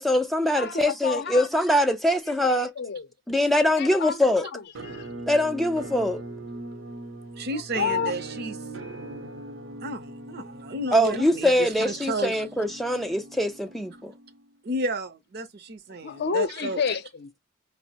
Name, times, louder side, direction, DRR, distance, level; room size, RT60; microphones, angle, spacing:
voice 1, 0.0-2.7 3.3-4.5 5.3-6.2 10.9-14.1, left 1 dB, ahead, 0.3 m, -23 dB
voice 2, 0.5-1.5 2.3-3.1 3.7-5.1 7.5-8.2 16.0-17.3, left 6 dB, 55° left, 0.5 m, -30 dB
Musical instrument, 4.7-14.5, right 2 dB, 80° right, 0.8 m, -40 dB
voice 3, 7.4-8.6 9.8-12.4 14.6-16.8, right 2 dB, 55° right, 0.6 m, -32 dB
5.1 x 2.0 x 2.8 m
head